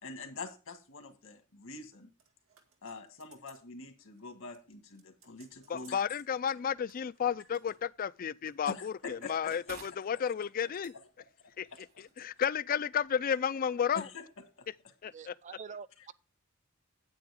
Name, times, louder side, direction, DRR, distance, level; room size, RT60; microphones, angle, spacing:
voice 1, 0.0-2.1 2.8-6.0 8.7-10.5 11.2-11.5 11.9-12.1 13.9-14.2 14.6-14.7, left 3 dB, 80° left, 1.8 m, -45 dB
sound 1, 2.2-3.7 4.0-4.2 4.5-6.3 6.9-7.8 8.4-9.8 10.1-10.3 10.8-11.0 11.6-11.9 12.1-12.2, right 5 dB, 85° right, 2.0 m, -62 dB
voice 2, 5.7-10.9 11.6-11.7 12.2-14.0 15.0-15.3, left 8 dB, 45° left, 0.4 m, -32 dB
sound 2, 6.4-14.5, right 5 dB, 70° right, 2.7 m, -60 dB
voice 3, 15.1-16.1, right 6 dB, 35° right, 0.4 m, -46 dB
9.2 x 8.8 x 3.5 m
head